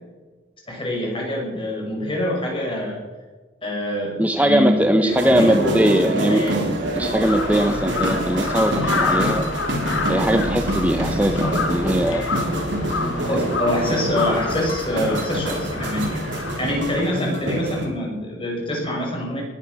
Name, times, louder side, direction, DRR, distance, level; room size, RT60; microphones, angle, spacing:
voice 1, 0.7-3.0 3.6-6.6 11.4-11.6 13.2-16.2 16.6-19.4, left 1 dB, 30° left, -1 dB, 6.3 m, -25 dB
voice 2, 4.2-6.4 6.9-9.4 10.1-12.2, right 1 dB, 10° right, 6 dB, 0.8 m, -20 dB
sound 1, 5.1-17.9, right 1 dB, 70° right, 3.9 m, -27 dB
sound 2, 5.5-14.6, right 1 dB, 45° right, 4.2 m, -33 dB
Crow, 7.2-17.0, left 4 dB, 85° left, 2.3 m, -29 dB
20.0 x 11.5 x 6.4 m, 1.3 s
head